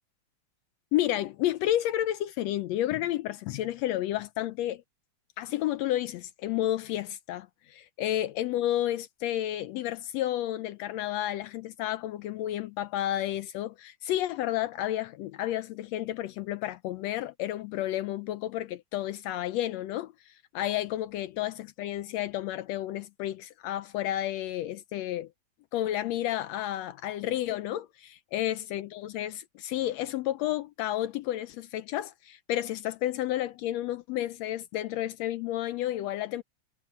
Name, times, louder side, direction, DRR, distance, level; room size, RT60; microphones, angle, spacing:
voice 1, 0.9-4.8 5.4-25.3 25.7-36.4, left 13 dB, 80° left, 1.7 m, -31 dB
omnidirectional pair, 3.3 m